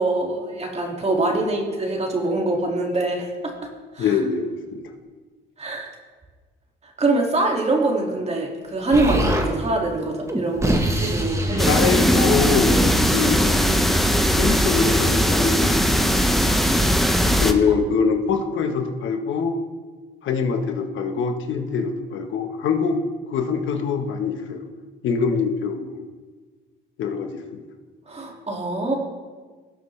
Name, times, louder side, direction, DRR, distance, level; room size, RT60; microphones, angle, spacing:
voice 1, 0.0-3.5 3.9-4.1 5.6-5.9 7.0-11.8 17.3-17.7 28.1-29.0, right 2 dB, 30° right, 0 dB, 2.3 m, -24 dB
voice 2, 4.0-4.8 11.7-13.8 14.4-16.2 17.4-19.6 20.2-23.0 23.3-24.6 25.0-26.0 27.0-27.6, left 5 dB, 75° left, 5 dB, 1.3 m, -24 dB
Explosion, 8.9-9.5 10.3-14.1, right 1 dB, 15° right, 1.4 m, -25 dB
sound 1, 11.6-17.5, equal, ahead, 0.8 m, -19 dB
18.0 x 6.5 x 3.3 m, 1.4 s
cardioid pair, 90°, 20 cm